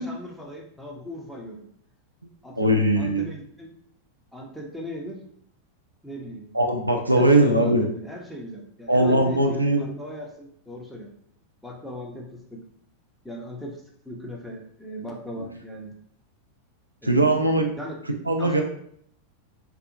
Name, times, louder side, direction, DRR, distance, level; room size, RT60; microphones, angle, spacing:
voice 1, 0.0-1.7 2.4-3.7 4.3-5.2 6.0-6.5 7.2-11.1 11.6-12.6 13.2-13.8 14.0-15.9 17.0-17.5 17.7-18.0 18.4-18.6, equal, ahead, -1 dB, 0.5 m, -38 dB
voice 2, 2.6-3.2 6.5-7.9 8.9-9.9 17.0-17.7 18.3-18.6, right 1 dB, 85° right, 3 dB, 0.3 m, -20 dB
2.6 x 2.4 x 2.6 m, 0.67 s
figure-of-eight pair, 90°, 0 cm